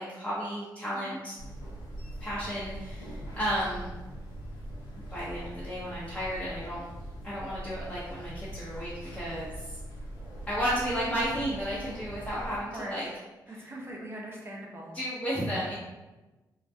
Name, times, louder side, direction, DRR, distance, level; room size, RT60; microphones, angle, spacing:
voice 1, 0.0-1.4 2.2-3.9 5.1-6.8 7.2-9.8 10.5-13.1 13.6-13.7 14.9-15.7, equal, 15° left, -10 dB, 0.7 m, -33 dB
sound 1, 1.4-12.6, right 1 dB, 75° left, 0.6 m, -41 dB
voice 2, 13.5-15.0, right 1 dB, 30° right, -2 dB, 0.7 m, -41 dB
2.3 x 2.2 x 2.6 m, 1.1 s
cardioid pair, 65°, 8 cm